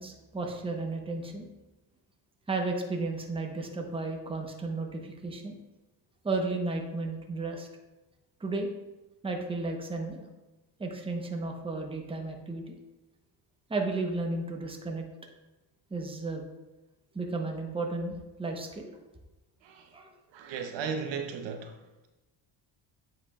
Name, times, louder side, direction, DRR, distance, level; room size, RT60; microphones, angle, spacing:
voice 1, 0.0-1.5 2.5-5.5 6.2-7.7 8.4-8.7 9.2-10.3 10.8-12.7 13.7-15.0 15.9-16.5 17.1-18.9 19.9-20.1, right 3 dB, 10° right, 0.9 m, -33 dB
voice 2, 19.6-19.9 20.3-21.8, right 6 dB, 75° right, 0.8 m, -35 dB
8.7 x 5.2 x 2.3 m
cardioid pair, 105°, 45 cm